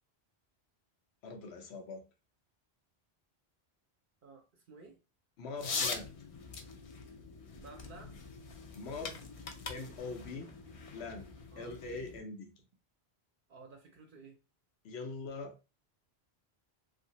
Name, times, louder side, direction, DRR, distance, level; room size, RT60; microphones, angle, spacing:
voice 1, 1.2-2.0 5.4-6.1 8.7-9.2 9.7-10.5 10.9-11.3 11.6-12.5 14.8-15.6, left 3 dB, 90° left, 0.9 m, -42 dB
voice 2, 4.2-5.0 7.6-8.2 10.4-10.5 11.5-11.8 13.5-14.4, right 4 dB, 60° right, 0.7 m, -54 dB
sound 1, 5.6-12.2, left 4 dB, 55° left, 0.4 m, -42 dB
2.7 x 2.5 x 2.8 m
omnidirectional pair, 1.1 m